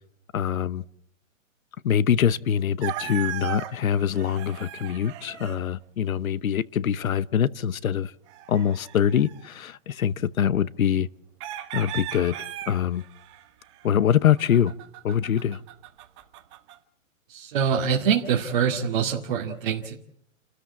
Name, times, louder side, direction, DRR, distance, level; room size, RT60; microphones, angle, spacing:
voice 1, 0.3-0.8 1.8-8.1 8.5-11.1 11.7-12.3 12.7-13.0 13.8-14.7 15.0-15.6, left 9 dB, 90° left, 1.0 m, -24 dB
sound 1, 2.8-5.6 8.3-9.5 11.4-16.8, right 12 dB, 20° right, 1.2 m, -37 dB
voice 2, 17.3-19.9, right 7 dB, 40° right, 2.2 m, -24 dB
30.0 x 13.5 x 8.4 m
hypercardioid pair, 165°, 40 cm